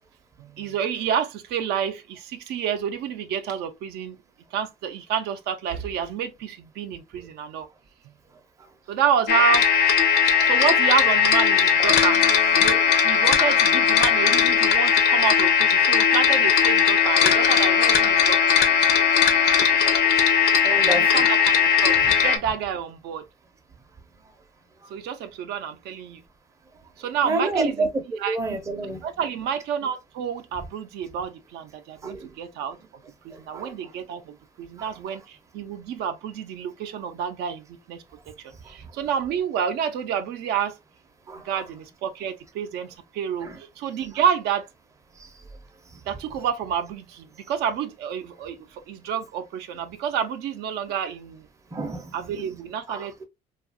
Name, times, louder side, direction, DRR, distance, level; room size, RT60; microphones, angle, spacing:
voice 1, 0.4-4.2 4.5-7.7 8.9-9.7 10.4-12.3 12.5-18.6 20.8-23.2 24.9-26.2 27.0-27.9 28.2-28.4 28.8-32.8 33.2-38.0 38.4-40.8 41.4-44.7 46.1-51.4 52.1-53.3, right 8 dB, 75° right, 0.4 m, -29 dB
sound 1, 9.3-22.4, left 7 dB, 70° left, 0.5 m, -18 dB
voice 2, 20.6-21.2 27.2-29.0 32.0-32.3 33.3-33.7 34.8-34.9 41.3-41.4 43.4-43.6 51.7-52.1 52.9-53.3, right 2 dB, 20° right, 0.5 m, -29 dB
2.7 x 2.3 x 2.3 m
cardioid pair, 110°, 17 cm